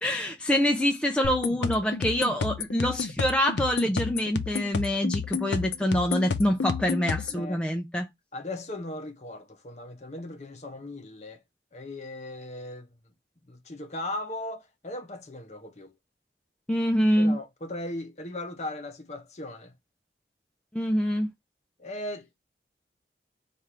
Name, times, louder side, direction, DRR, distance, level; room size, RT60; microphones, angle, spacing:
voice 1, 0.0-8.1 16.7-17.4 20.7-21.3, equal, 5° left, 0.3 m, -25 dB
sound 1, 1.2-7.4, left 5 dB, 80° left, 0.5 m, -31 dB
voice 2, 7.3-7.6 8.3-11.4 11.7-12.9 13.5-15.9 17.2-19.7 21.8-22.3, left 1 dB, 40° left, 0.7 m, -38 dB
3.3 x 2.5 x 4.2 m
head